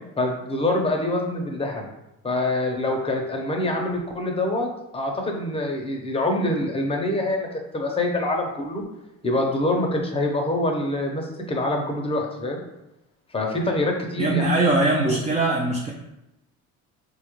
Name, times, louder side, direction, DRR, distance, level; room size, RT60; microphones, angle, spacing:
voice 1, 0.2-1.8 2.2-7.5 7.7-8.9 9.2-12.6 13.3-14.5 15.0-15.2, left 1 dB, 20° left, 1 dB, 0.7 m, -25 dB
voice 2, 14.2-15.9, right 2 dB, 20° right, -2 dB, 0.5 m, -21 dB
4.1 x 2.4 x 3.1 m, 0.91 s
cardioid pair, 100°, 32 cm